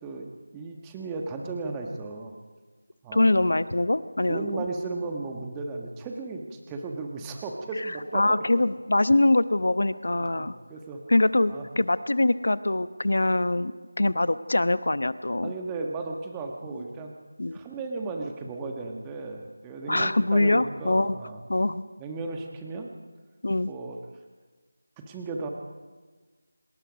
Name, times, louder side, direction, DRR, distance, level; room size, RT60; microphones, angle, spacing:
voice 1, 0.0-2.3 3.0-3.3 4.3-8.6 10.2-11.0 11.5-11.7 15.4-17.1 17.5-21.4 22.0-22.9 23.7-24.0 25.0-25.5, right 3 dB, 10° right, 2 dB, 1.5 m, -35 dB
voice 2, 3.1-4.6 8.1-10.6 11.1-13.7 14.0-15.5 16.7-16.8 17.4-17.6 19.9-21.2 21.5-21.8 23.4-23.7, left 2 dB, 70° left, 14 dB, 1.0 m, -23 dB
28.5 x 19.5 x 5.2 m, 1.4 s
figure-of-eight pair, 170°, 0 cm